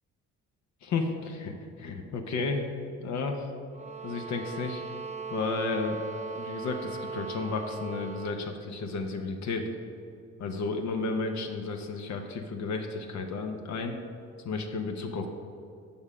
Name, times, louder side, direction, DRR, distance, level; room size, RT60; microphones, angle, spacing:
voice 1, 0.8-2.7 3.0-3.5 4.0-4.8 5.3-6.0 6.4-9.7 10.4-14.0 14.4-15.3, left 3 dB, 65° left, 4 dB, 0.8 m, -32 dB
sound 1, 3.7-8.5, right 5 dB, 25° right, 0.6 m, -39 dB
7.1 x 5.5 x 4.9 m, 2.4 s
cardioid pair, 90°, 30 cm